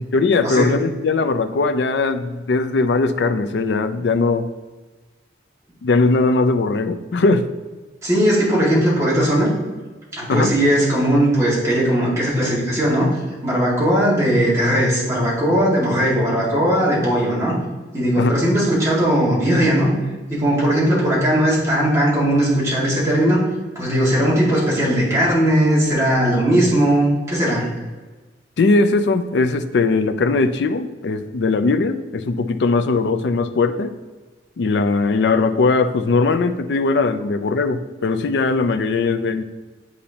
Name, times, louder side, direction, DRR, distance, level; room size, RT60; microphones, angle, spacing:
voice 1, 0.1-4.5 5.8-7.5 10.3-10.5 18.2-18.3 28.6-33.9 34.6-39.4, left 3 dB, 70° left, 9 dB, 0.4 m, -19 dB
voice 2, 8.0-9.5 10.1-13.2 13.4-17.5 17.9-19.9 20.3-23.4 23.8-27.7, equal, 15° right, -8 dB, 1.9 m, -18 dB
8.6 x 4.2 x 2.9 m, 1.3 s
head